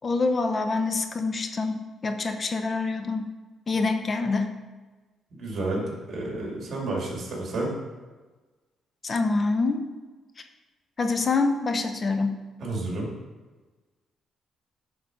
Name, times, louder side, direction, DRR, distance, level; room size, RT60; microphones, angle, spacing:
voice 1, 0.0-3.3 3.7-4.6 9.0-9.8 11.0-12.4, left 3 dB, 35° left, 7 dB, 0.8 m, -26 dB
voice 2, 5.3-7.7 12.6-13.1, right 2 dB, 50° right, -2 dB, 2.6 m, -30 dB
10.0 x 3.8 x 5.2 m, 1.3 s
cardioid pair, 90°, 0 cm